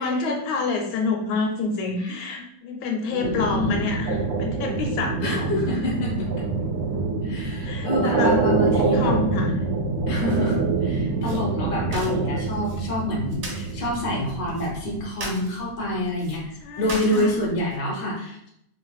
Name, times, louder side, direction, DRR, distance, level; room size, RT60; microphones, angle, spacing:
voice 1, 0.0-5.6 7.6-8.3 8.7-9.5 16.6-17.3, left 4 dB, 80° left, 1 dB, 1.4 m, -28 dB
voice 2, 3.1-3.8 5.2-6.3 7.2-9.1 10.1-18.5, left 1 dB, 50° left, -3 dB, 0.6 m, -27 dB
sound 1, 3.2-15.1, right 3 dB, 90° right, 0.8 m, -25 dB
sound 2, 11.2-17.8, right 1 dB, 55° right, 1.0 m, -40 dB
3.1 x 2.8 x 2.3 m, 0.75 s
omnidirectional pair, 2.2 m